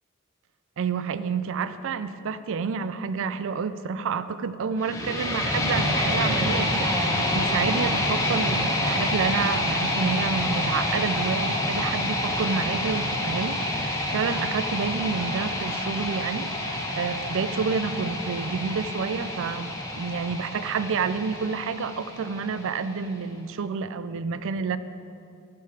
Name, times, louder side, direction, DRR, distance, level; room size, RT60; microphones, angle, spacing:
voice 1, 0.8-24.8, right 5 dB, 65° right, 13 dB, 0.4 m, -29 dB
sound 1, 4.8-22.8, left 1 dB, 15° left, 1.5 m, -27 dB
11.5 x 6.6 x 7.4 m, 2.6 s
head